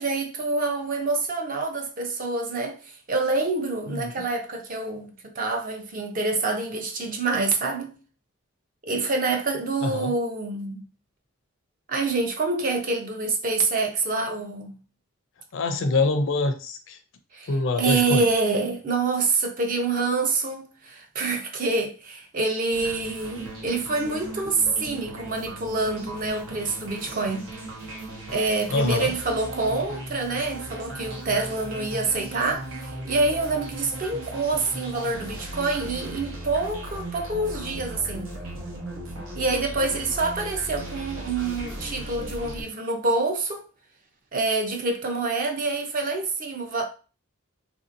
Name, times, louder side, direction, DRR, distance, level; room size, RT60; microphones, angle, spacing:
voice 1, 0.0-2.8 3.1-7.9 8.8-10.8 11.9-14.7 17.3-17.5 17.8-27.5 28.3-38.3 39.4-43.6 44.3-46.8, right 3 dB, 40° right, 0.5 m, -26 dB
voice 2, 3.9-4.2 9.8-10.1 15.5-17.0 17.5-18.3 28.7-29.1, left 3 dB, 65° left, 0.4 m, -25 dB
sound 1, 22.7-42.6, right 1 dB, 85° right, 0.9 m, -37 dB
3.3 x 2.7 x 2.5 m
head